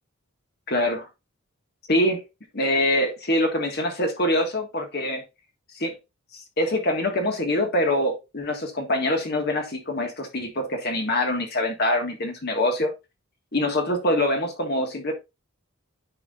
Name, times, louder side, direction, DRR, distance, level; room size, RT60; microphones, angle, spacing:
voice 1, 0.7-1.1 1.9-2.2 2.5-5.2 5.7-5.9 6.3-12.9 13.5-15.1, left 1 dB, 45° left, 1.7 m, -24 dB
10.0 x 4.8 x 2.4 m
head